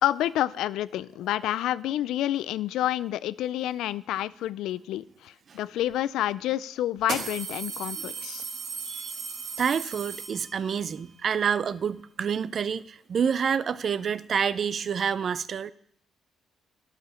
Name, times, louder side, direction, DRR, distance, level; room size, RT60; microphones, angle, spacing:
voice 1, 0.0-8.4, left 13 dB, 85° left, 0.3 m, -29 dB
sound 1, 5.9-6.0 7.0-10.8, right 5 dB, 75° right, 1.9 m, -36 dB
voice 2, 9.6-15.7, right 7 dB, 50° right, 0.4 m, -28 dB
10.5 x 4.9 x 6.8 m
cardioid pair, 90°, 0 cm